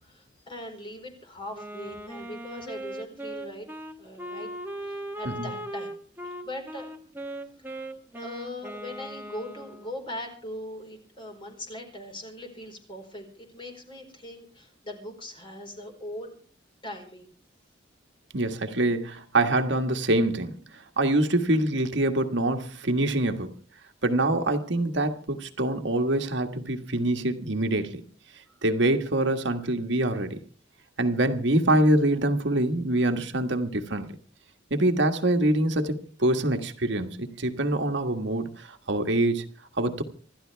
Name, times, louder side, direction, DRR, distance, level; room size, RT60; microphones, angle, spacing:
voice 1, 0.0-3.7 4.0-4.5 4.8-5.9 6.2-7.0 8.1-16.4 16.8-17.3, left 1 dB, 25° left, 4.5 m, -40 dB
Wind instrument woodwind instrument, 1.5-10.0, right 1 dB, 10° right, 1.3 m, -39 dB
voice 2, 18.3-23.5 24.0-28.0 28.6-30.4 31.0-34.2 34.7-39.4 39.8-40.0, right 1 dB, 70° right, 1.6 m, -25 dB
27.0 x 12.5 x 3.4 m
head